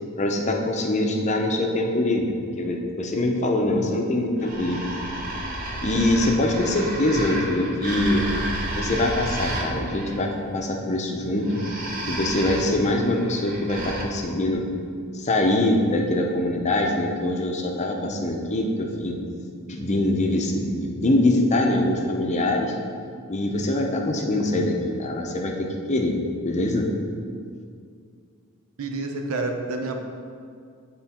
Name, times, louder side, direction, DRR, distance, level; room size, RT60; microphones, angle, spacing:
voice 1, 0.2-4.8 5.8-8.3 8.8-11.6 12.1-14.6 15.1-19.2 19.7-22.7 23.3-26.1 26.4-26.9, left 1 dB, 35° left, 2 dB, 0.7 m, -23 dB
sound 1, 4.4-10.2 11.4-14.0, right 1 dB, 40° right, 0.9 m, -31 dB
voice 2, 28.8-30.0, right 2 dB, 80° right, 4 dB, 0.7 m, -28 dB
9.2 x 3.8 x 4.3 m, 2.3 s
head